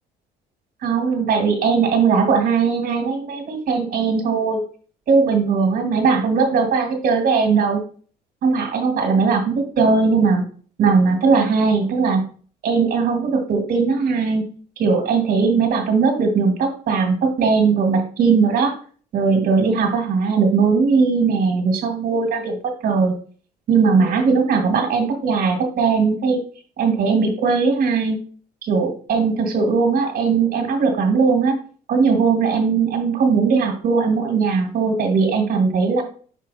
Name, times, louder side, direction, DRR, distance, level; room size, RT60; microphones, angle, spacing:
voice 1, 0.8-4.6 5.1-7.8 8.4-10.4 10.8-12.2 12.6-14.4 14.8-18.7 19.1-23.1 23.7-26.4 26.8-28.2 28.6-31.6 31.9-36.0, right 5 dB, 55° right, 4 dB, 1.7 m, -19 dB
5.6 x 4.6 x 4.1 m, 0.43 s
cardioid pair, 110°, 17 cm